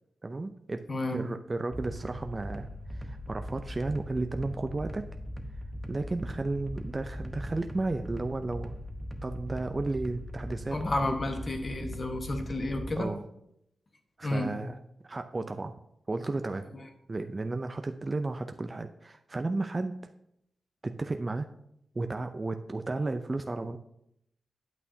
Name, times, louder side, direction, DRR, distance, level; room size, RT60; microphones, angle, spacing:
voice 1, 0.2-0.8 1.1-5.1 5.9-8.7 9.2-10.8 11.0-11.1 13.0-13.2 14.2-14.8 15.0-15.7 16.1-16.7 17.1-20.0 20.8-21.5 21.9-23.8, right 2 dB, 35° right, 7 dB, 0.5 m, -33 dB
voice 2, 0.9-1.2 10.7-13.1 14.2-14.6, left 2 dB, 45° left, 4 dB, 1.4 m, -31 dB
sound 1, 1.7-13.0, equal, 10° right, 0.9 m, -40 dB
9.0 x 8.3 x 2.8 m, 0.77 s
cardioid pair, 60°, 0 cm